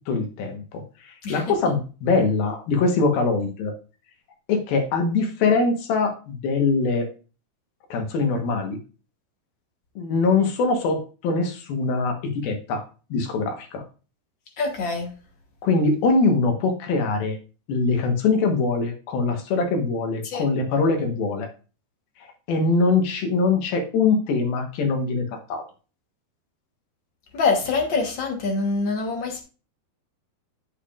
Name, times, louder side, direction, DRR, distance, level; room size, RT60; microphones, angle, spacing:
voice 1, 0.1-0.6 1.1-3.7 4.5-7.1 7.9-8.8 10.0-12.2 12.4-12.8 13.1-13.8 15.6-17.4 17.7-21.5 22.5-25.6, left 4 dB, 85° left, 4 dB, 3.2 m, -22 dB
voice 2, 14.6-15.1 20.2-20.4 27.3-29.4, left 4 dB, 65° left, 2 dB, 1.1 m, -25 dB
8.5 x 8.2 x 2.5 m, 0.34 s
omnidirectional pair, 4.1 m